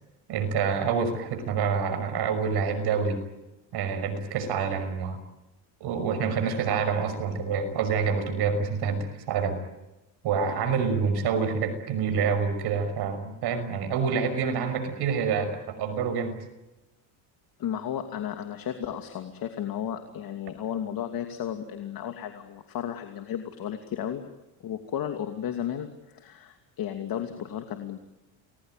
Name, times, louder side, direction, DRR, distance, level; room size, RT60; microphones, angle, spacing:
voice 1, 0.3-3.2 3.7-5.2 5.8-9.6 10.2-16.4, right 6 dB, 60° right, 9 dB, 5.9 m, -27 dB
voice 2, 17.6-24.3 24.6-28.0, left 9 dB, 50° left, 5 dB, 2.7 m, -34 dB
30.0 x 21.0 x 9.2 m, 0.99 s
cardioid pair, 110°, 44 cm